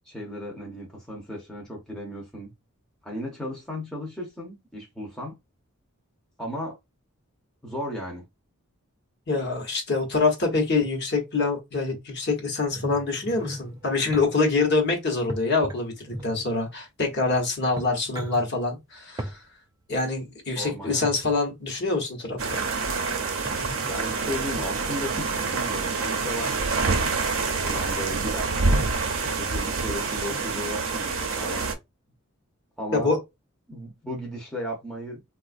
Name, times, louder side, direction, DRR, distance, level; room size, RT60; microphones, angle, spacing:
voice 1, 0.1-2.5 3.0-5.4 6.4-6.8 7.6-8.3 20.6-21.1 23.9-28.5 29.4-31.7 32.8-33.1 33.7-35.2, equal, 5° left, 0.7 m, -35 dB
voice 2, 9.3-19.4 19.9-22.6 32.9-33.2, left 3 dB, 50° left, 1.0 m, -25 dB
sound 1, 12.7-14.3 15.3-16.6 17.2-17.3 17.6-18.4 19.2-19.4 20.8-21.3 23.4-23.9 24.6-24.9 26.0-26.5 27.3-27.4 27.6-27.7 28.0-28.3 28.7-29.6 30.3-30.4, equal, 15° right, 0.3 m, -37 dB
sound 2, 22.4-31.7, right 4 dB, 60° right, 0.6 m, -27 dB
3.6 x 2.4 x 2.4 m
head